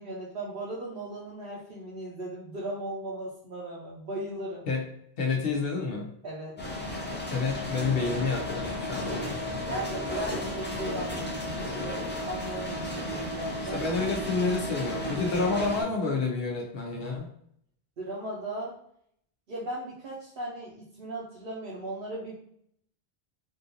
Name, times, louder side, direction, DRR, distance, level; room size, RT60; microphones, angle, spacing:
voice 1, 0.0-4.6 6.2-6.6 9.7-13.8 18.0-18.7 19.5-22.3, right 1 dB, 65° right, -5 dB, 0.9 m, -37 dB
voice 2, 5.2-6.1 7.3-9.8 13.7-17.3, left 4 dB, 65° left, 1 dB, 0.9 m, -29 dB
sound 1, 6.6-15.8, left 1 dB, 15° left, 0.4 m, -33 dB
3.6 x 2.5 x 2.7 m, 0.68 s
omnidirectional pair, 1.1 m